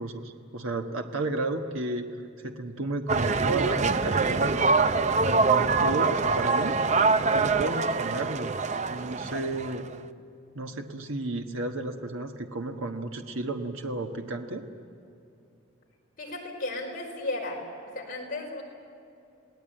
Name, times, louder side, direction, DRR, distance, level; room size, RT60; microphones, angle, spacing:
voice 1, 0.0-2.1 2.4-4.8 5.2-6.7 7.3-8.5 8.9-9.9 10.5-14.7, right 2 dB, 80° right, 4 dB, 1.3 m, -33 dB
sound 1, 3.1-9.9, right 4 dB, 35° right, 0.6 m, -24 dB
voice 2, 16.2-17.6 17.9-18.6, left 2 dB, 45° left, 0 dB, 4.9 m, -34 dB
28.5 x 18.5 x 9.0 m, 2.6 s
head